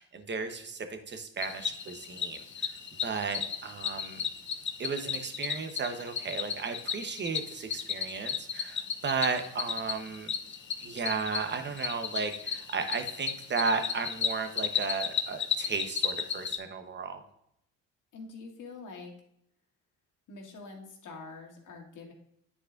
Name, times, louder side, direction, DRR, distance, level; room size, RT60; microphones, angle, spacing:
voice 1, 0.0-2.8 3.0-4.2 4.8-10.3 10.8-17.2, right 5 dB, 35° right, 7 dB, 1.0 m, -34 dB
Cricket, 1.4-16.6, left 7 dB, 35° left, 0.7 m, -34 dB
voice 2, 18.1-19.1 20.3-22.1, left 3 dB, 65° left, -1 dB, 2.1 m, -45 dB
9.7 x 4.8 x 2.6 m, 0.74 s
cardioid pair, 85°, 33 cm